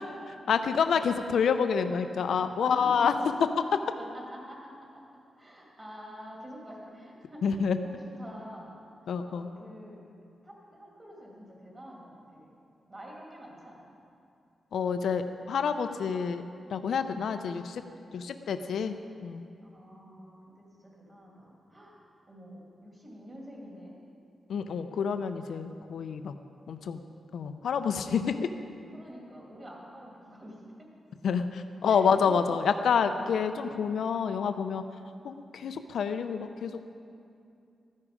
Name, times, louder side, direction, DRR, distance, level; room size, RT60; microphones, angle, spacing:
voice 1, 0.3-3.1 7.4-7.8 9.1-9.5 14.7-16.4 16.7-17.8 18.1-19.0 19.2-19.5 24.5-26.4 26.7-27.0 27.3-28.3 31.2-34.8 35.2-36.8, left 6 dB, 75° left, 9 dB, 0.5 m, -28 dB
voice 2, 2.6-3.1 4.0-5.0 5.4-8.7 9.0-10.0 10.4-12.5 12.9-13.9 19.7-22.0 22.3-23.9 28.3-28.5 28.9-30.6 31.8-32.4 35.0-35.2, equal, 25° right, -3 dB, 2.4 m, -47 dB
13.5 x 9.8 x 5.0 m, 2.5 s
wide cardioid pair, 165°, 0 cm